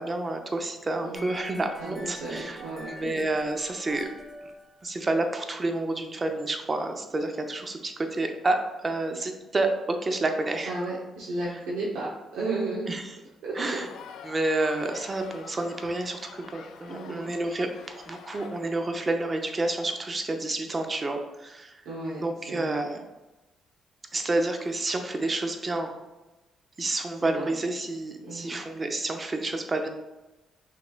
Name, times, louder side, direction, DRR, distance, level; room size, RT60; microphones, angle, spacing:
voice 1, 0.0-2.6 2.9-4.1 4.8-10.7 12.9-13.0 13.5-13.9 14.2-21.8 22.2-23.0 24.1-25.9 26.8-29.9, right 2 dB, 30° right, 5 dB, 0.6 m, -29 dB
sound 1, 1.1-5.3, equal, 20° left, 0.8 m, -45 dB
voice 2, 1.8-3.2 10.7-12.1 12.3-12.9 13.4-13.8 16.9-17.3 21.8-22.2 22.5-22.8 27.2-27.6 28.2-28.6, right 2 dB, 90° right, -7 dB, 0.9 m, -33 dB
sound 2, 13.7-18.7, left 6 dB, 75° left, 0.3 m, -46 dB
5.6 x 3.1 x 2.4 m, 1.1 s
cardioid pair, 90°, 0 cm